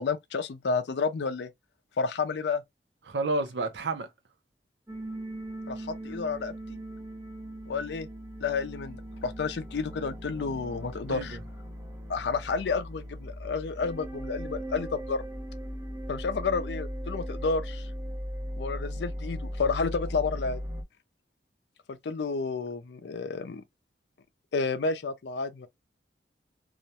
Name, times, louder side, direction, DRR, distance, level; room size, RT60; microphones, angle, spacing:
voice 1, 0.0-1.5 2.0-2.6 5.7-6.8 7.7-8.1 8.4-11.4 12.1-15.2 16.1-17.9 18.6-20.6 22.0-23.6 24.5-25.7, left 4 dB, 75° left, 0.4 m, -31 dB
voice 2, 3.1-4.1 11.1-11.4, right 2 dB, 80° right, 0.5 m, -30 dB
sound 1, 4.9-20.8, equal, 15° right, 0.6 m, -38 dB
2.4 x 2.1 x 2.7 m
head